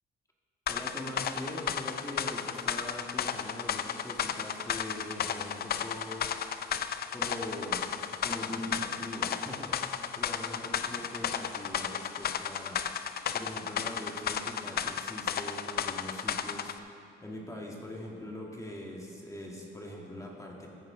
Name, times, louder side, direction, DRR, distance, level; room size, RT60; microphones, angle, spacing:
sound 1, 0.7-16.8, left 8 dB, 50° left, 0.5 m, -34 dB
voice 1, 0.7-6.5 7.1-12.9 13.3-16.9 17.2-20.7, left 1 dB, 15° left, -2 dB, 1.7 m, -42 dB
14.5 x 8.8 x 3.8 m, 2.5 s
cardioid pair, 90°, 20 cm